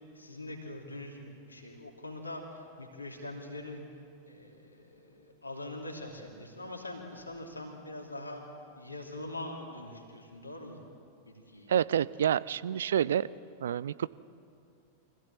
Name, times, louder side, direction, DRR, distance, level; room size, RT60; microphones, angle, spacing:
voice 1, 0.1-3.8 4.3-8.4 8.8-10.8 11.2-11.8, left 1 dB, 85° left, 1 dB, 2.9 m, -43 dB
voice 2, 11.7-13.3 13.6-14.1, right 9 dB, 65° right, 19 dB, 0.4 m, -28 dB
24.5 x 16.0 x 7.4 m, 2.6 s
figure-of-eight pair, 90°, 0 cm